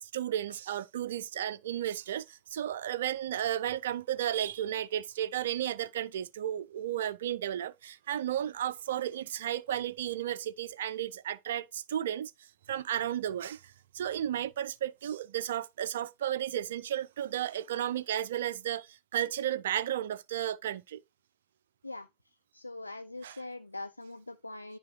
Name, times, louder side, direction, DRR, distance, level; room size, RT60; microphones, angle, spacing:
voice 1, 0.0-12.3 12.7-21.0 23.2-23.4, right 11 dB, 60° right, 0.3 m, -33 dB
voice 2, 22.5-24.8, left 2 dB, 85° left, 0.3 m, -42 dB
9.4 x 4.9 x 2.7 m
figure-of-eight pair, 90°, 0 cm